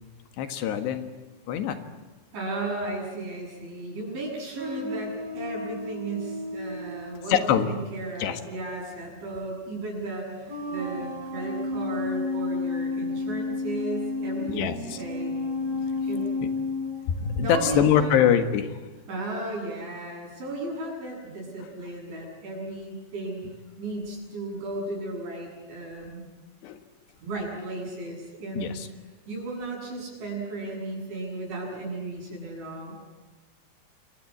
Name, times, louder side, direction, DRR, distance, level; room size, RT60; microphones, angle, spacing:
voice 1, 0.4-1.1 1.5-1.8 7.3-7.7 8.2-8.4 14.5-15.0 17.1-18.8 26.6-26.8 28.6-28.9, left 9 dB, 75° left, 8 dB, 3.7 m, -24 dB
voice 2, 2.3-15.4 15.7-16.5 17.4-18.2 19.1-23.4 23.8-26.2 27.2-28.8 29.3-32.9, right 2 dB, 90° right, -1 dB, 10.5 m, -35 dB
sound 1, 4.6-7.9 8.7-8.8 10.2-17.9, left 3 dB, 50° right, 6.4 m, -32 dB
28.0 x 22.0 x 8.7 m, 1.3 s
omnidirectional pair, 5.1 m